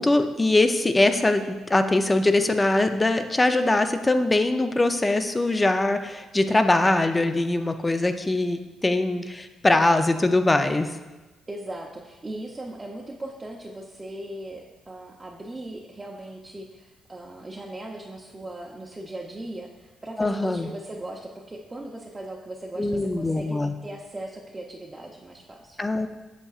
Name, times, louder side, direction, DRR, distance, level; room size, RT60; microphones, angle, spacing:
voice 1, 0.0-10.9 20.2-20.7 22.8-23.7 25.8-26.1, left 2 dB, 20° left, 8 dB, 0.5 m, -22 dB
voice 2, 11.5-26.0, right 1 dB, 20° right, -2 dB, 0.7 m, -38 dB
8.2 x 7.0 x 2.4 m, 1.2 s
cardioid pair, 90°, 0 cm